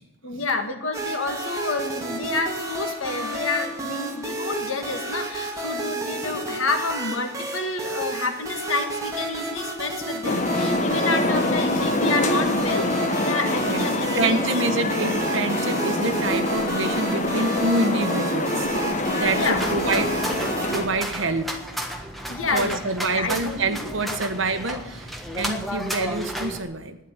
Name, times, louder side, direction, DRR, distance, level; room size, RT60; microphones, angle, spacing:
voice 1, 0.2-14.7 19.3-19.6 22.3-22.8 23.1-24.2, left 3 dB, 70° left, 5 dB, 1.9 m, -29 dB
sound 1, 0.9-20.8, right 2 dB, 15° right, 2.4 m, -31 dB
sound 2, 10.2-20.9, left 1 dB, 35° left, 1.2 m, -25 dB
voice 2, 14.1-18.7 19.1-21.6 22.5-27.0, right 2 dB, 65° right, 8 dB, 1.3 m, -27 dB
sound 3, 19.5-26.6, equal, ahead, 1.5 m, -32 dB
11.5 x 10.0 x 9.8 m, 0.96 s
head